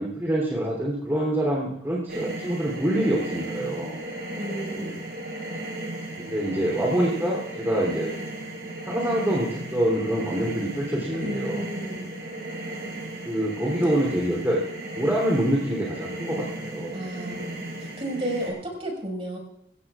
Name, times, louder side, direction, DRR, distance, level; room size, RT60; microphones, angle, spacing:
voice 1, 0.0-4.0 6.2-8.1 8.8-11.6 13.2-14.6 15.0-17.0, right 1 dB, 15° right, -4 dB, 3.4 m, -26 dB
sound 1, 2.1-18.5, right 1 dB, 70° right, 7.3 m, -35 dB
voice 2, 4.3-5.0 11.1-12.2 13.8-13.9 16.9-19.4, right 1 dB, 35° right, -1 dB, 5.5 m, -33 dB
25.0 x 16.5 x 2.5 m, 0.78 s
head